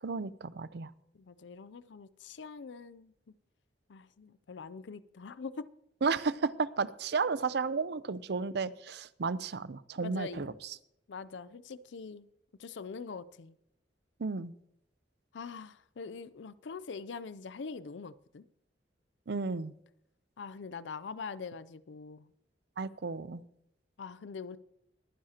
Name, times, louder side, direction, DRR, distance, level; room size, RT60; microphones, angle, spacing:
voice 1, 0.0-0.9 6.0-10.5 14.2-14.5 19.3-19.7 22.8-23.4, right 4 dB, 65° right, 0.5 m, -33 dB
voice 2, 1.1-3.3 3.9-5.7 10.0-10.6 11.1-12.3 12.6-13.6 15.3-18.5 20.4-22.3 24.0-24.6, left 5 dB, 90° left, 0.5 m, -43 dB
22.0 x 9.8 x 2.9 m
head